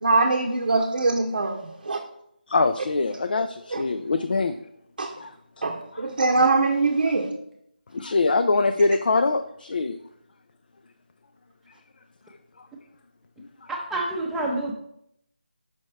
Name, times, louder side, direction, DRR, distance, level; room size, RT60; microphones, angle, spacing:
voice 1, 0.0-2.0 3.7-3.8 5.0-5.1 5.6-7.3, right 3 dB, 65° right, 0.7 m, -23 dB
voice 2, 2.5-4.6 5.2-5.3 7.9-10.0 13.4-13.7, left 3 dB, 60° left, 0.4 m, -23 dB
voice 3, 13.7-14.7, right 2 dB, 5° right, 0.6 m, -28 dB
6.1 x 5.6 x 3.2 m
figure-of-eight pair, 160°, 6 cm